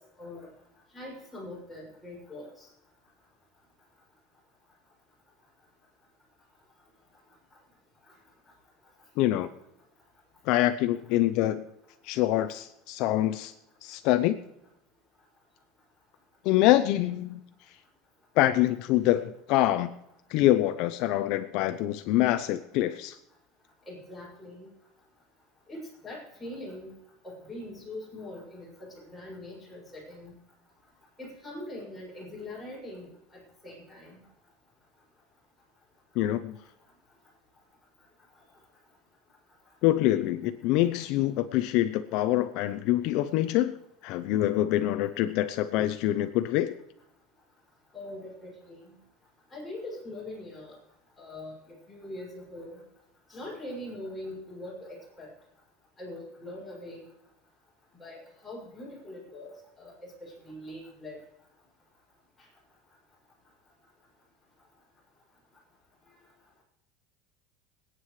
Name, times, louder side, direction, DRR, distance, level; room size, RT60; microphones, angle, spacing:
voice 1, 0.2-0.5 0.9-2.7 23.9-24.7 25.7-26.9 27.2-30.3 31.2-33.1 33.6-34.2 47.9-49.0 49.5-50.8 51.2-52.8 53.3-55.3 56.0-57.1 58.0-59.5 59.8-61.2, left 1 dB, 5° left, -6 dB, 6.5 m, -42 dB
voice 2, 9.2-9.5 10.5-11.6 12.0-13.5 13.8-14.4 16.4-17.4 18.4-19.9 20.3-23.2 36.2-36.6 39.8-43.7 44.0-46.7, left 14 dB, 60° left, 9 dB, 0.6 m, -25 dB
27.0 x 9.1 x 3.2 m, 0.83 s
supercardioid pair, 145°, 0 cm